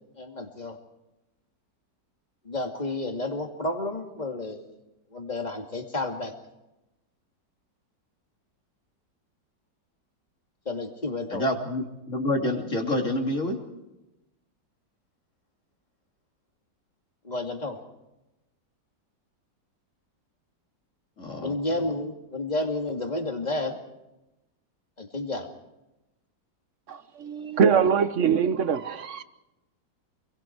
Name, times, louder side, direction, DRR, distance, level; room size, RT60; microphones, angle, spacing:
voice 1, 0.2-0.8 2.4-4.7 5.1-6.3 10.7-11.4 17.2-17.8 21.4-23.8 25.0-25.5, left 2 dB, 25° left, 2.6 m, -31 dB
voice 2, 11.3-13.6 21.2-21.6, left 1 dB, 40° left, 3.3 m, -27 dB
voice 3, 26.9-29.2, right 7 dB, 45° right, 1.3 m, -23 dB
28.0 x 22.0 x 4.7 m
omnidirectional pair, 1.9 m